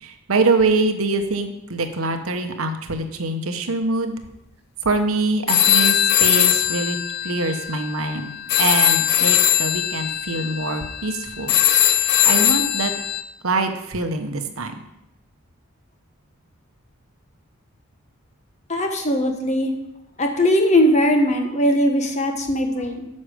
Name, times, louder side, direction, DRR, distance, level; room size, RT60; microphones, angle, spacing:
voice 1, 0.0-4.2 4.8-7.0 7.2-8.3 8.6-11.5 11.9-12.9 13.4-14.7, right 3 dB, 80° right, 7 dB, 1.0 m, -24 dB
sound 1, 5.5-13.2, left 11 dB, 50° left, 0.4 m, -20 dB
voice 2, 18.7-19.7 20.2-23.1, equal, 30° left, 4 dB, 1.1 m, -19 dB
9.7 x 6.4 x 5.0 m, 0.89 s
head